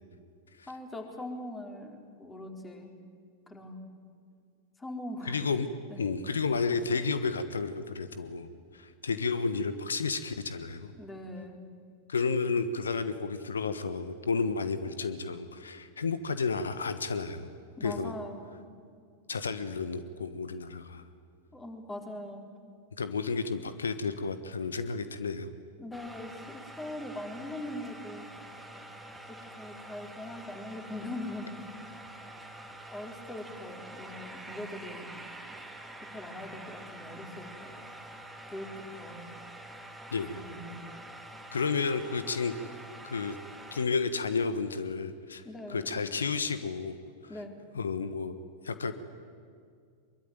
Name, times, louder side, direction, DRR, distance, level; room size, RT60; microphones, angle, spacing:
voice 1, 0.7-2.9 3.5-3.8 4.8-5.4 5.9-6.0 11.0-11.6 17.8-18.6 21.5-22.5 25.8-28.3 29.3-31.6 32.9-35.1 36.1-37.8 38.5-39.4 40.2-40.7 45.4-46.0 47.3-47.6, left 1 dB, 15° left, 3 dB, 4.1 m, -41 dB
voice 2, 5.2-5.7 6.0-10.9 12.1-17.5 17.8-18.1 19.3-21.0 23.0-25.5 40.1-40.4 41.5-42.5 43.0-43.4 43.7-45.4 45.7-46.9 47.7-48.3 48.6-48.9, left 4 dB, 70° left, 12 dB, 1.3 m, -31 dB
sound 1, 25.9-43.9, right 1 dB, 5° right, 2.4 m, -46 dB
23.5 x 23.0 x 9.4 m, 2.2 s
figure-of-eight pair, 90°, 0 cm